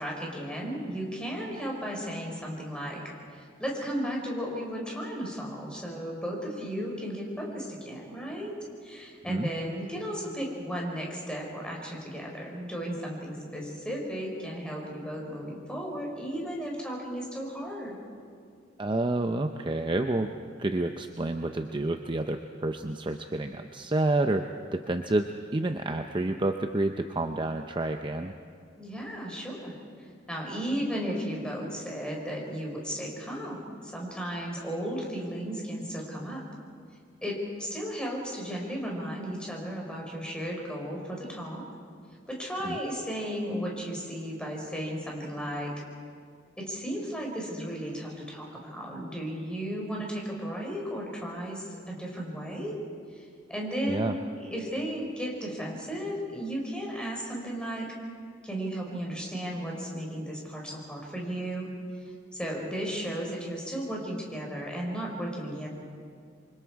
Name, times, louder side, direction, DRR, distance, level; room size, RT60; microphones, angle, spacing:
voice 1, 0.0-3.0 3.3-8.5 8.8-17.9 28.8-29.8 30.3-36.4 37.2-41.6 42.3-45.7 46.6-52.7 53.2-57.9 58.4-61.7 62.3-65.7, equal, 5° left, -2 dB, 4.6 m, -35 dB
voice 2, 18.8-20.3 20.6-24.5 24.7-25.3 25.5-28.3 42.6-42.8 53.9-54.1, right 2 dB, 25° right, 6 dB, 0.6 m, -29 dB
27.0 x 24.5 x 4.7 m, 2.2 s
head